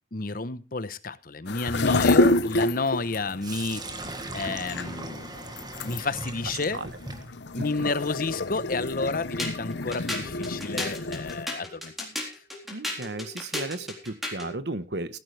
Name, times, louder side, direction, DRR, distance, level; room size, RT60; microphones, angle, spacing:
voice 1, 0.1-3.8 4.3-5.3 5.8-6.8 7.5-12.1, left 3 dB, 55° left, 14 dB, 1.0 m, -31 dB
sound 1, 1.5-11.5, left 2 dB, 80° left, 0.8 m, -28 dB
Sink (filling or washing), 3.4-11.3, right 2 dB, 25° right, 1.7 m, -41 dB
voice 2, 7.6-7.9 12.7-15.2, right 2 dB, 70° right, 13 dB, 1.2 m, -34 dB
sound 2, 9.4-14.5, left 1 dB, ahead, 3.8 m, -35 dB
15.5 x 14.0 x 3.4 m, 0.31 s
head